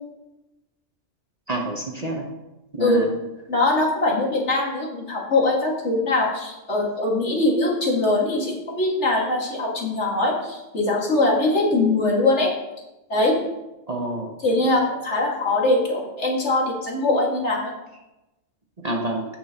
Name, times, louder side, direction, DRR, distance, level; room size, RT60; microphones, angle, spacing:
voice 1, 1.5-2.3 2.7-3.1 13.9-14.3 18.8-19.3, right 2 dB, 35° right, 0 dB, 1.0 m, -27 dB
voice 2, 3.5-12.5 13.1-13.4 14.4-17.7, left 2 dB, 60° left, -3 dB, 2.4 m, -22 dB
16.0 x 5.7 x 2.9 m, 0.99 s
omnidirectional pair, 1.3 m